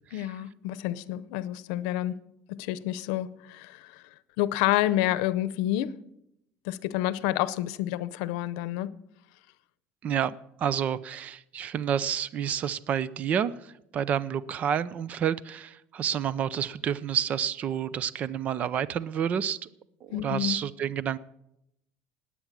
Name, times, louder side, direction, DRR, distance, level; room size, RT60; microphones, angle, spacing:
voice 1, 0.1-2.2 2.5-4.0 4.4-5.9 6.6-8.9 20.1-20.6, left 14 dB, 85° left, 0.7 m, -29 dB
voice 2, 10.0-19.6 20.0-21.2, right 8 dB, 35° right, 0.6 m, -29 dB
19.5 x 8.5 x 7.4 m
cardioid pair, 155°, 4 cm